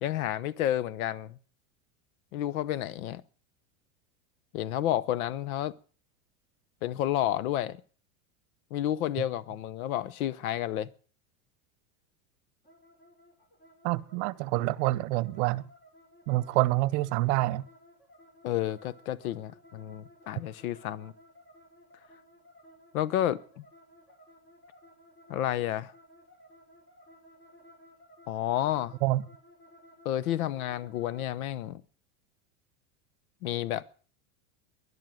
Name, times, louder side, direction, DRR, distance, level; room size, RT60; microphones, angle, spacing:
voice 1, 0.0-1.4 2.3-3.2 4.5-5.7 6.8-7.8 8.7-10.9 18.4-21.1 22.9-23.6 25.3-25.9 28.3-28.9 30.0-31.8 33.4-33.9, left 12 dB, 90° left, 0.8 m, -30 dB
sound 1, 12.6-31.3, equal, 30° left, 5.7 m, -57 dB
voice 2, 13.8-15.6 16.3-17.6 29.0-29.2, right 18 dB, 55° right, 0.9 m, -27 dB
12.5 x 11.5 x 9.1 m
supercardioid pair, 160°, 41 cm